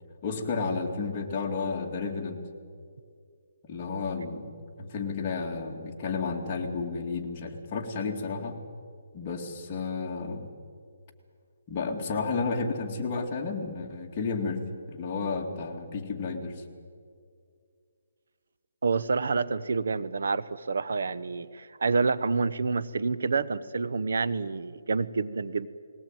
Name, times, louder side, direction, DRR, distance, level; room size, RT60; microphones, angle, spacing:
voice 1, 0.2-2.4 3.6-8.6 9.1-10.5 11.7-14.6 14.9-16.6, left 4 dB, 25° left, 0 dB, 2.4 m, -32 dB
voice 2, 18.8-25.7, right 4 dB, 75° right, 15 dB, 0.9 m, -28 dB
20.5 x 18.0 x 9.0 m, 2.2 s
hypercardioid pair, 170°, 0 cm